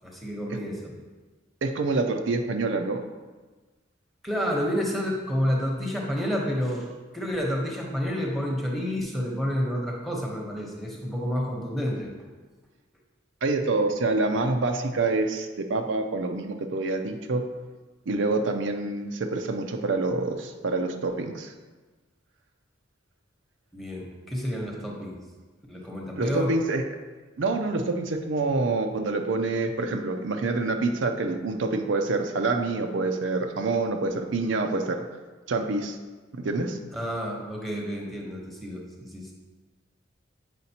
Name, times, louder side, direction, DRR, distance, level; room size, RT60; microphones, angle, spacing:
voice 1, 0.0-0.9 4.2-6.9 7.1-12.1 23.7-25.2 25.7-26.5 36.9-39.3, equal, ahead, -1 dB, 0.9 m, -29 dB
voice 2, 1.6-3.0 13.4-17.5 18.1-21.5 26.2-26.8 27.4-35.1 35.5-36.0 36.4-36.8, right 3 dB, 75° right, 5 dB, 0.5 m, -26 dB
7.9 x 5.0 x 2.8 m, 1.3 s
head